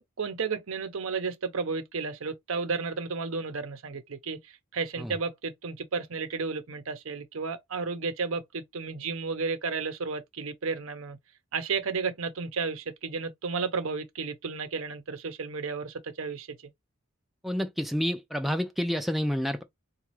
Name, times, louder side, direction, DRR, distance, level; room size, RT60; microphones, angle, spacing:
voice 1, 0.0-11.2 11.5-16.6, right 4 dB, 80° right, 0.7 m, -33 dB
voice 2, 17.4-19.6, equal, ahead, 0.4 m, -29 dB
4.0 x 2.3 x 3.1 m
head